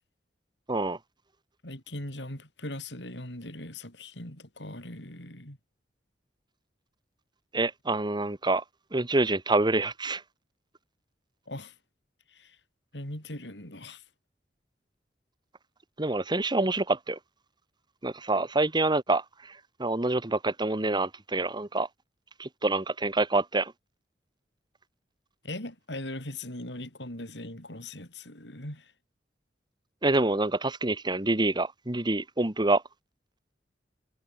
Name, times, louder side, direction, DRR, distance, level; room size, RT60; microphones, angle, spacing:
voice 1, 1.6-5.6 11.5-11.7 12.3-12.6 12.9-14.0 25.4-28.9, left 1 dB, 90° left, 7.8 m, -40 dB
voice 2, 7.5-8.6 8.9-10.2 16.0-17.2 18.0-21.9 22.4-23.7 30.0-32.8, right 2 dB, 25° right, 1.5 m, -27 dB
head